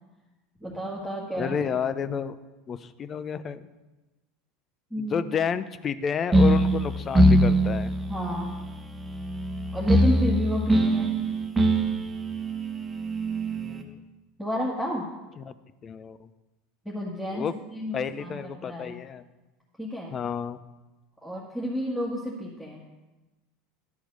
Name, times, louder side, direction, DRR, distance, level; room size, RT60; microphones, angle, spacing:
voice 1, 0.6-1.6 4.9-5.3 8.1-8.5 9.7-11.2 14.4-15.1 16.8-19.0 19.8-20.2 21.2-22.9, equal, 5° left, -5 dB, 2.0 m, -31 dB
voice 2, 1.3-2.4 2.7-3.7 5.0-7.9 13.5-14.0 15.4-15.5 15.8-16.3 17.3-17.5 17.9-19.2 20.1-20.6, left 7 dB, 35° left, 12 dB, 0.6 m, -30 dB
sound 1, 6.3-13.8, right 1 dB, 15° right, 1.2 m, -23 dB
12.0 x 4.6 x 5.3 m, 1.1 s
hypercardioid pair, 85°, 0 cm